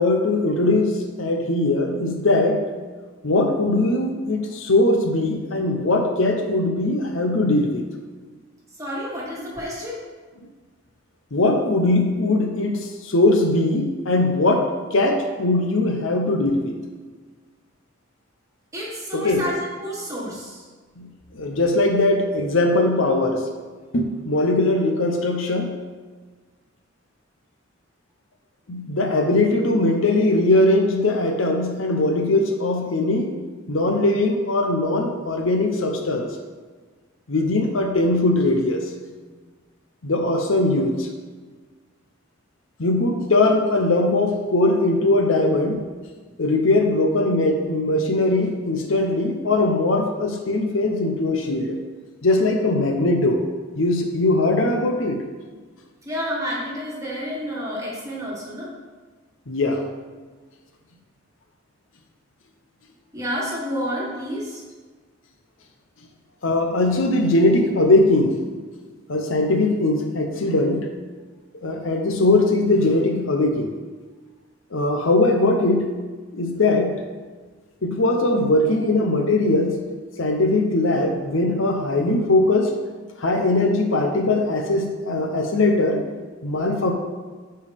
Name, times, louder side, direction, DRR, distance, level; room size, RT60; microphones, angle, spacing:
voice 1, 0.0-2.7 3.2-7.9 11.3-16.8 19.1-19.5 21.0-23.4 23.9-25.8 28.7-33.4 33.7-36.3 37.3-38.9 40.0-41.1 42.8-45.9 46.4-51.8 52.2-53.4 53.7-55.2 59.5-59.9 66.4-68.6 69.1-70.9 71.6-73.7 74.7-76.0 76.3-77.0 77.8-79.8 80.2-82.7 83.2-86.1 86.4-86.9, left 2 dB, 65° left, 3 dB, 0.8 m, -20 dB
voice 2, 8.8-10.0 18.7-20.6 56.1-58.7 63.1-64.6, equal, 15° right, -5 dB, 1.7 m, -30 dB
10.0 x 4.6 x 3.5 m, 1.4 s
head